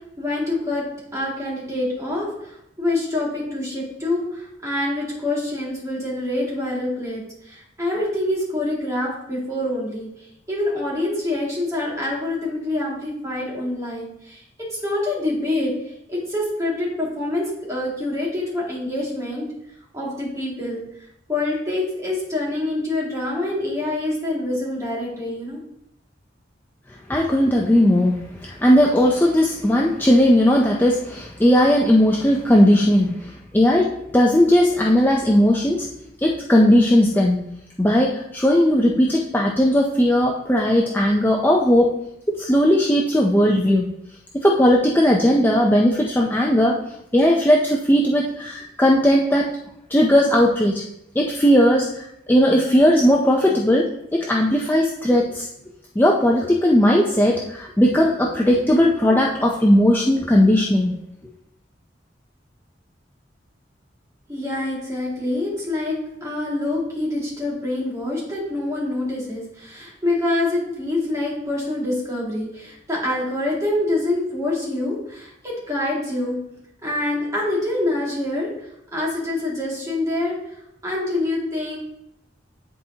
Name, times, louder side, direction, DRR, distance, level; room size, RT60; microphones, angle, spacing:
voice 1, 0.2-0.9 1.1-15.7 16.1-19.5 19.9-20.8 21.3-25.6 64.3-76.4 76.8-78.5 78.9-80.4 80.8-81.8, left 2 dB, 15° right, -5 dB, 2.1 m, -26 dB
voice 2, 27.1-35.9 36.2-37.4 37.8-41.9 42.3-43.9 44.3-46.8 47.1-49.5 49.9-50.8 51.2-55.5 56.0-61.0, equal, 10° left, -1 dB, 0.5 m, -17 dB
10.0 x 4.3 x 2.8 m, 0.81 s
head